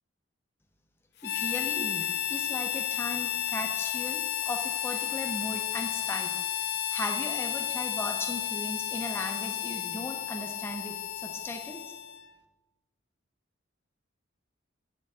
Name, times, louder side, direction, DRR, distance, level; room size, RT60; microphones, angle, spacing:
Harmonica, 1.2-12.3, left 12 dB, 55° left, 0.4 m, -32 dB
voice 1, 1.2-6.3 6.9-10.9 11.2-11.8, left 1 dB, 10° left, 3 dB, 0.7 m, -37 dB
8.9 x 5.2 x 3.6 m, 1.2 s
head